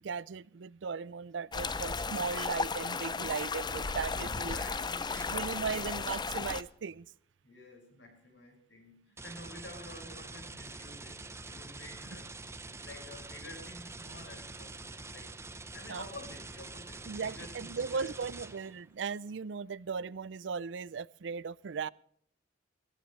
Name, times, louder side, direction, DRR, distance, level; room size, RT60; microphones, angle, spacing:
voice 1, 0.0-4.6 5.3-7.1 15.9-16.1 17.1-21.9, right 5 dB, 80° right, 0.5 m, -37 dB
sound 1, 1.5-6.6, left 4 dB, 25° left, 0.5 m, -35 dB
voice 2, 4.1-5.4 5.7-5.8 7.4-12.3 12.6-15.4 15.7-18.1, left 1 dB, 75° left, 5.3 m, -50 dB
sound 2, 5.1-6.1 9.2-18.9, right 3 dB, 15° right, 0.8 m, -46 dB
21.5 x 15.0 x 3.2 m
head